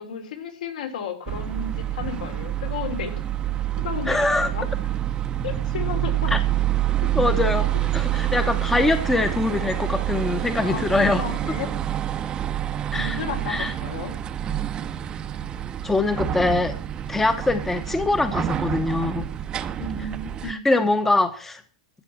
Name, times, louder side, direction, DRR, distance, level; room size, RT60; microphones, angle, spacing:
voice 1, 0.0-3.1 3.8-4.7 5.4-6.3 10.6-11.7 12.9-14.1 19.8-20.6, left 6 dB, 75° left, 5 dB, 3.7 m, -33 dB
sound 1, 1.3-20.5, right 12 dB, 20° right, 0.7 m, -27 dB
voice 2, 4.1-4.5 6.3-6.4 7.1-11.2 12.9-13.2 13.5-13.7 15.8-16.8 17.1-19.3 20.0-20.1 20.4-21.6, left 2 dB, 5° left, 10 dB, 0.9 m, -23 dB
13.5 x 7.5 x 7.3 m, 0.39 s
hypercardioid pair, 145°, 4 cm